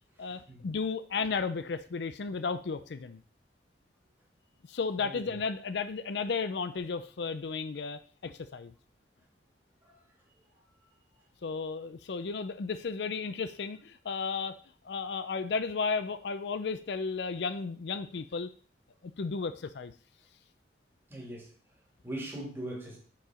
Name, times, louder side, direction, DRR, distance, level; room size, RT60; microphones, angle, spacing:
voice 1, 0.2-3.2 4.7-8.7 11.4-14.6 14.8-18.5 19.2-19.9, left 4 dB, 70° left, 12 dB, 0.5 m, -34 dB
voice 2, 21.1-21.5 22.0-23.0, right 1 dB, 15° right, -3 dB, 2.6 m, -40 dB
7.2 x 4.7 x 5.0 m, 0.41 s
head